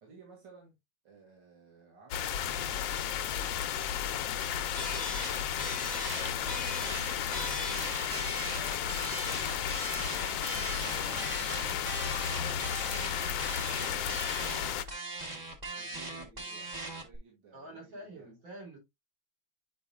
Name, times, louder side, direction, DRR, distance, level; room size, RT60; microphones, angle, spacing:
voice 1, 0.0-0.8 1.0-3.8 4.2-4.9 6.4-7.6 8.1-8.4 8.8-11.2 11.5-14.9 15.7-18.3, right 5 dB, 60° right, 2.7 m, -57 dB
sound 1, 2.1-14.9, left 9 dB, 75° left, 1.3 m, -33 dB
sound 2, 4.8-17.2, right 2 dB, 25° right, 1.0 m, -39 dB
voice 2, 6.2-6.6 17.5-18.8, right 1 dB, 75° right, 4.3 m, -47 dB
sound 3, 8.0-14.2, left 2 dB, 10° left, 1.0 m, -52 dB
9.5 x 5.2 x 2.3 m
omnidirectional pair, 2.2 m